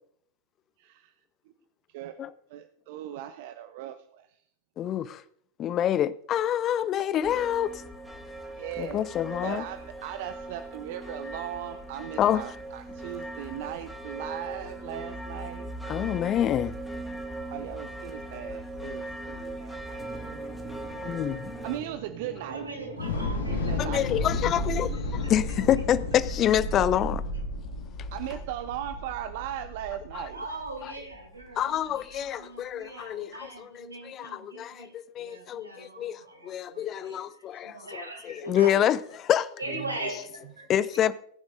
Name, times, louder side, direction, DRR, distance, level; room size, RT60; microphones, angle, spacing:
voice 1, 0.8-1.1 1.9-4.4 8.5-9.0 9.4-15.7 17.5-20.1 21.6-22.7 23.5-24.0 28.1-30.4 39.7-40.1, right 12 dB, 50° right, 0.7 m, -38 dB
voice 2, 4.8-5.2 5.6-7.8 8.8-9.6 12.2-12.4 15.9-16.8 21.0-21.5 23.8-27.2 28.0-28.1 30.1-30.3 31.6-39.6 40.7-41.1, left 11 dB, 30° left, 0.5 m, -27 dB
sound 1, 7.2-21.8, right 1 dB, 5° left, 1.7 m, -39 dB
sound 2, 20.0-26.2, right 4 dB, 25° right, 2.7 m, -45 dB
voice 3, 22.5-23.6 30.3-34.9 35.2-37.2 37.6-38.9 39.6-40.6, right 2 dB, 80° right, 4.6 m, -40 dB
Thunder / Explosion, 22.9-31.2, left 2 dB, 65° left, 2.2 m, -32 dB
19.5 x 10.5 x 2.6 m
figure-of-eight pair, 90°, 0 cm